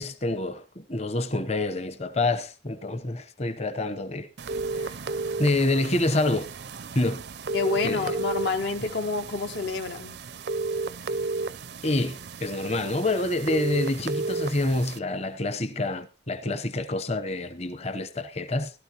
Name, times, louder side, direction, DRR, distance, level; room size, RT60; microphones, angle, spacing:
voice 1, 0.0-4.3 4.7-4.9 5.4-6.5 6.9-7.2 7.8-8.2 8.8-8.9 11.8-18.7, left 2 dB, 35° left, 0.9 m, -27 dB
sound 1, 4.4-15.0, right 3 dB, 60° right, 0.5 m, -33 dB
voice 2, 7.5-10.2, left 4 dB, 65° left, 0.7 m, -28 dB
16.5 x 12.0 x 2.9 m
head